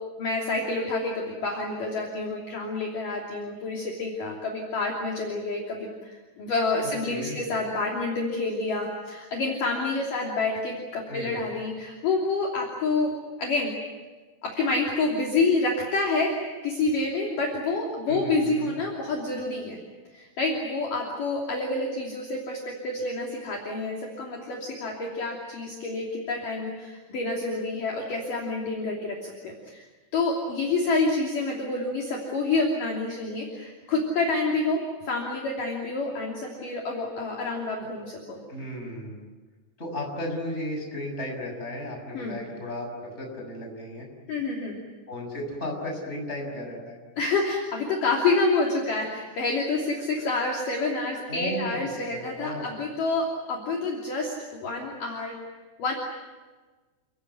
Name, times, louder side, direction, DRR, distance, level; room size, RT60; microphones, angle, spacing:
voice 1, 0.2-13.1 13.4-13.7 14.4-19.8 20.1-29.8 30.1-38.4 42.1-42.4 44.3-44.8 47.2-55.3 55.8-55.9, left 3 dB, 45° left, -1 dB, 4.2 m, -28 dB
voice 2, 6.8-7.5 11.1-11.4 18.1-18.7 38.5-39.3 39.8-44.1 45.1-47.0 51.3-52.7, left 1 dB, 15° left, 1 dB, 6.9 m, -35 dB
30.0 x 19.0 x 9.6 m, 1.3 s
omnidirectional pair, 5.7 m